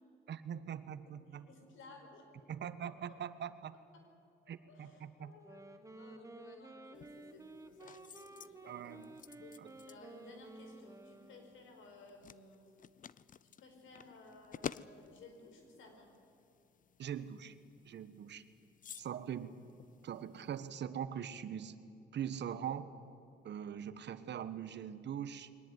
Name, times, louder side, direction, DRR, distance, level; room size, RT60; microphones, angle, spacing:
voice 1, 0.3-1.5 2.5-3.7 4.5-5.3 8.7-9.1 9.6-9.7 17.0-17.5 17.8-18.4 19.0-19.5 20.0-21.7 22.1-22.9 23.4-25.5, right 9 dB, 60° right, 13 dB, 1.3 m, -42 dB
voice 2, 1.3-2.5 2.9-3.2 3.9-4.1 4.4-5.6 5.9-9.1 9.4-9.6 9.9-12.7 13.4-16.2, left 3 dB, 80° left, 4 dB, 5.0 m, -57 dB
Wind instrument woodwind instrument, 5.3-11.8, right 2 dB, 15° right, 1.7 m, -54 dB
sound 1, 6.9-20.7, left 8 dB, 40° left, 0.6 m, -53 dB
22.5 x 18.5 x 9.7 m, 2.7 s
cardioid pair, 90°, 20 cm